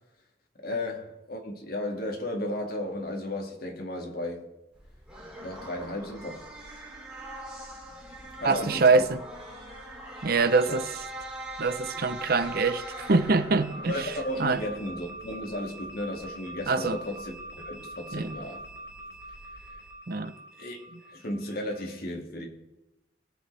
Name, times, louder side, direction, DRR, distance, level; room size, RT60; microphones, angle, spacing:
voice 1, 0.6-4.5 5.4-6.5 8.4-9.1 10.7-10.8 13.9-17.3 17.7-18.6 20.6-20.8 21.1-22.5, left 1 dB, 60° left, 2.2 m, -34 dB
sound 1, 4.7-19.9, right 1 dB, 5° right, 4.4 m, -43 dB
voice 2, 8.4-9.2 10.2-10.9 11.6-14.1 14.4-14.6 16.7-17.0 18.1-18.4 20.1-20.3, right 4 dB, 60° right, 0.7 m, -24 dB
sound 2, 10.1-12.7 13.6-21.9, right 1 dB, 85° left, 4.9 m, -45 dB
21.0 x 7.8 x 3.4 m
head